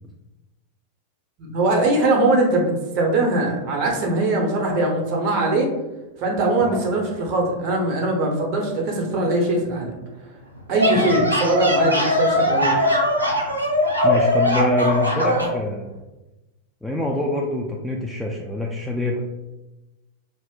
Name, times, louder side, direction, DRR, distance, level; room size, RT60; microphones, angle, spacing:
voice 1, 1.4-5.7 6.2-9.9 10.7-12.7, right 2 dB, 40° right, 0 dB, 0.6 m, -21 dB
sound 1, 10.6-15.6, left 1 dB, 90° right, 0.4 m, -20 dB
voice 2, 14.0-15.9 16.8-19.2, left 1 dB, 5° left, -2 dB, 0.3 m, -25 dB
2.5 x 2.0 x 3.7 m, 1.0 s
figure-of-eight pair, 90°, 0 cm